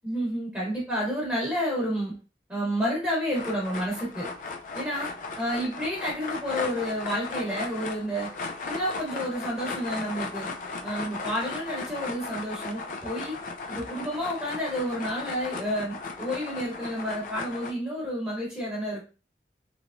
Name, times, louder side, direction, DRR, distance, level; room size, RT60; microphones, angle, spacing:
voice 1, 0.0-2.1 2.5-4.3 4.7-5.1 5.4-8.3 8.6-10.5 10.8-13.4 13.7-19.0, equal, 10° right, -5 dB, 0.9 m, -30 dB
sound 1, 3.3-17.7, left 3 dB, 45° left, 0.3 m, -36 dB
3.3 x 2.9 x 2.5 m, 0.33 s
head